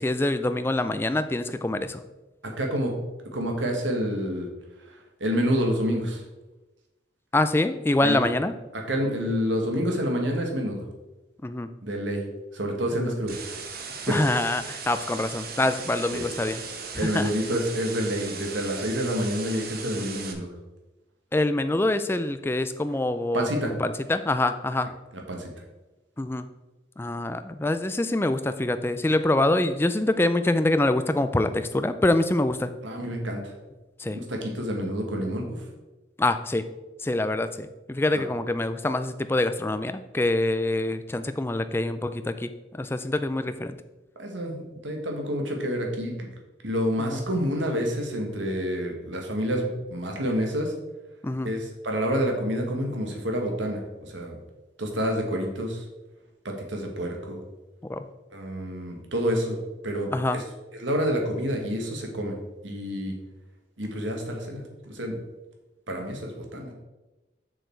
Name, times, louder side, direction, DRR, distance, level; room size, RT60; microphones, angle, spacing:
voice 1, 0.0-2.0 7.3-8.5 11.4-11.7 13.0-13.1 14.1-16.6 16.9-17.3 19.9-20.0 21.3-24.9 26.2-26.4 27.0-32.7 34.0-34.2 36.2-36.6 37.0-42.5 42.8-43.8 47.0-47.2 51.2-51.5 57.9-58.0 60.1-60.4, left 2 dB, 10° left, 10 dB, 0.3 m, -25 dB
voice 2, 2.4-2.9 3.3-4.5 5.2-6.2 8.0-8.2 8.7-10.8 11.8-12.2 12.5-13.3 13.9-14.2 16.1-16.3 17.0-20.5 23.3-23.7 25.1-25.5 32.8-33.5 34.1-35.6 38.1-38.2 44.2-46.3 46.6-50.7 51.4-54.4 54.8-55.8 56.4-57.4 58.3-59.6 59.8-60.4 60.8-62.4 62.6-63.1 63.8-65.1 65.9-66.7, equal, 90° right, 2 dB, 1.6 m, -28 dB
sound 1, 13.3-20.3, right 5 dB, 50° right, 1.0 m, -38 dB
6.8 x 6.5 x 4.5 m, 1.1 s
head